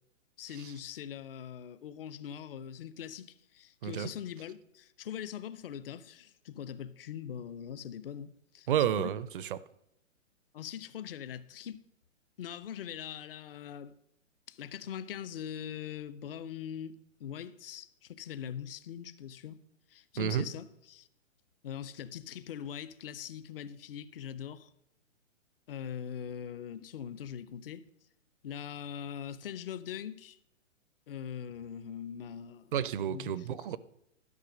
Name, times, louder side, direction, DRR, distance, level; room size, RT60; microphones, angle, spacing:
voice 1, 0.4-9.2 10.5-11.8 12.4-13.9 14.5-16.9 17.2-19.6 19.9-21.1 21.6-24.7 25.7-27.9 28.4-30.4 31.1-32.7 33.1-33.5, left 9 dB, 45° left, 0.7 m, -42 dB
voice 2, 8.7-9.6 20.2-20.5 32.7-33.8, right 10 dB, 45° right, 0.5 m, -31 dB
12.0 x 5.8 x 6.2 m
hypercardioid pair, 140°, 38 cm